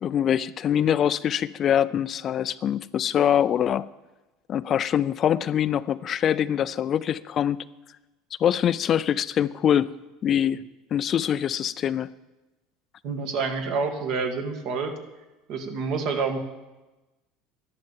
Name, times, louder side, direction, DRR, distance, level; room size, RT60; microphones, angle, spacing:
voice 1, 0.0-3.9 4.5-7.6 8.4-9.9 10.2-10.6 10.9-12.1, left 9 dB, 40° left, 15 dB, 0.4 m, -24 dB
voice 2, 13.0-15.0 15.5-16.4, right 4 dB, 60° right, 5 dB, 2.0 m, -28 dB
11.5 x 11.0 x 7.4 m, 1.1 s
supercardioid pair, 120°, 0 cm